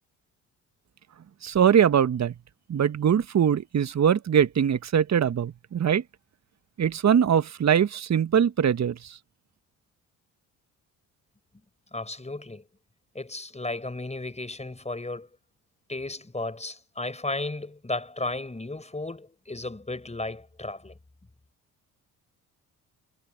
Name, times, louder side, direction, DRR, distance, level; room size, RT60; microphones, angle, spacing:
voice 1, 1.4-2.3 2.7-6.0 6.8-9.2, right 8 dB, 40° right, 1.5 m, -22 dB
voice 2, 11.9-12.6 13.1-15.3 15.9-20.9, left 2 dB, 15° left, 5.4 m, -34 dB
hypercardioid pair, 50°, 44 cm